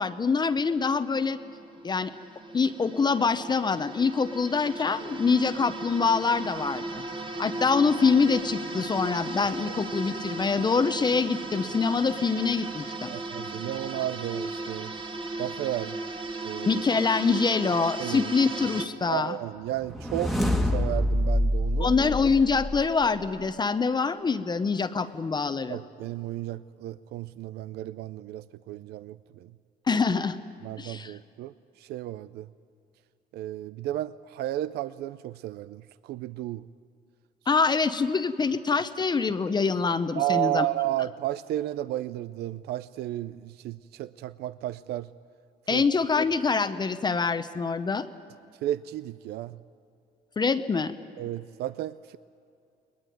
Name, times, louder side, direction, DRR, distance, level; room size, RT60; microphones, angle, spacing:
voice 1, 0.0-1.4 1.8-2.1 2.5-6.8 7.4-13.1 16.7-19.4 21.8-25.8 29.9-30.4 30.8-31.1 37.5-40.7 45.7-48.1 50.4-51.0, left 5 dB, 25° left, 10 dB, 0.8 m, -25 dB
sound 1, 1.2-18.9, right 2 dB, 30° right, 1.7 m, -36 dB
voice 2, 13.1-14.9 15.4-16.0 16.4-16.8 18.0-18.3 19.1-20.4 20.6-21.9 25.7-29.5 30.6-32.5 33.3-36.6 40.2-45.1 45.7-45.8 48.6-49.6 51.2-52.2, right 14 dB, 75° right, 15 dB, 0.5 m, -33 dB
sound 2, 19.8-23.0, equal, ahead, 1.6 m, -26 dB
22.0 x 20.0 x 9.3 m, 2.6 s
cardioid pair, 110°, 17 cm